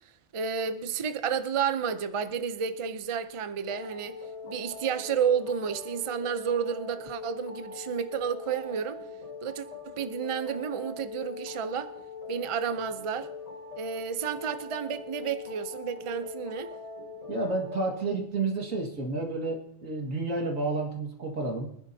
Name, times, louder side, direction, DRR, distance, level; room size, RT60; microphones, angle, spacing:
voice 1, 0.3-4.2 4.4-9.0 9.4-11.9 12.3-13.3 13.7-16.7, right 7 dB, 35° right, 0.5 m, -31 dB
sound 1, 3.7-18.0, left 4 dB, 30° left, 1.1 m, -42 dB
voice 2, 17.3-21.7, right 3 dB, 90° right, 2.3 m, -30 dB
23.5 x 10.5 x 2.8 m
omnidirectional pair, 1.4 m